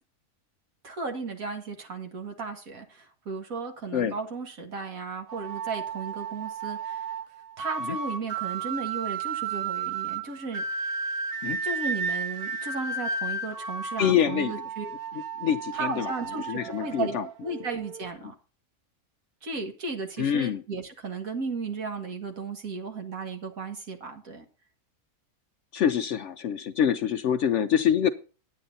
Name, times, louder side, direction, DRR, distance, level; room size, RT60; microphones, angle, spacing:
voice 1, 0.8-7.2 7.6-10.6 11.6-14.9 15.7-18.3 19.4-24.5, right 4 dB, 65° right, 2.1 m, -35 dB
sound 1, 5.3-18.1, right 5 dB, 50° right, 0.8 m, -33 dB
voice 2, 14.0-14.5 15.4-16.1 16.5-17.2 20.2-20.6 25.7-28.1, left 9 dB, 65° left, 0.8 m, -25 dB
9.4 x 9.0 x 4.1 m
omnidirectional pair, 1.6 m